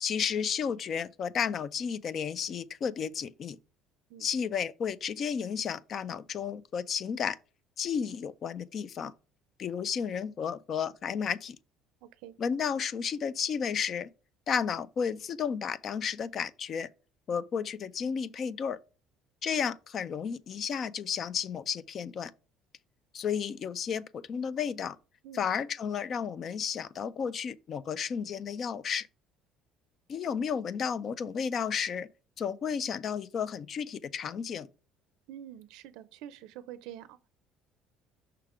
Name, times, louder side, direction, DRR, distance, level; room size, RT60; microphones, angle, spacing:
voice 1, 0.0-3.6 4.2-7.4 7.8-9.1 9.6-11.6 12.4-14.1 14.5-16.9 17.3-18.8 19.4-22.3 23.1-25.0 25.3-29.1 30.1-32.1 32.4-34.7, left 7 dB, 35° left, 0.3 m, -32 dB
voice 2, 12.0-12.3 25.2-25.4 35.3-37.3, right 11 dB, 80° right, 0.4 m, -46 dB
5.7 x 3.6 x 4.8 m
cardioid pair, 165°, 0 cm